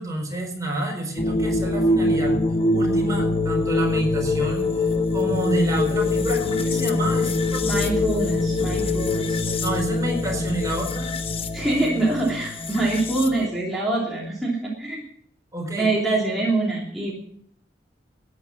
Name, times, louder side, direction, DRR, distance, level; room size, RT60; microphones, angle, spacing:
voice 1, 0.0-2.4 2.7-4.7 5.1-7.9 9.6-11.1 15.5-16.4, right 1 dB, 20° right, 2 dB, 4.3 m, -29 dB
sound 1, 1.2-13.5, left 2 dB, 30° left, 0.9 m, -24 dB
voice 2, 7.7-9.4 11.5-15.0 15.8-17.1, right 2 dB, ahead, -6 dB, 3.0 m, -24 dB
13.5 x 9.7 x 7.2 m, 0.64 s
head